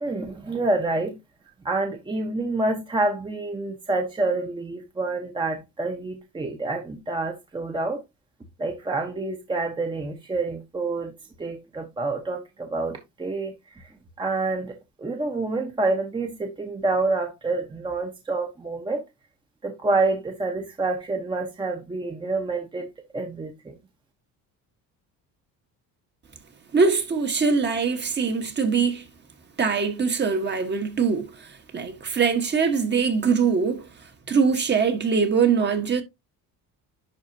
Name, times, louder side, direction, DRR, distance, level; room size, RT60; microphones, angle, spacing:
voice 1, 0.0-1.2 1.6-8.0 8.6-11.1 11.4-13.9 14.2-19.0 19.6-22.9 23.1-23.7, right 3 dB, 15° right, 1.0 m, -27 dB
voice 2, 26.7-29.0 29.6-33.9 34.3-36.0, right 5 dB, 30° right, 1.4 m, -22 dB
11.0 x 4.3 x 2.8 m
cardioid pair, 135°, 35 cm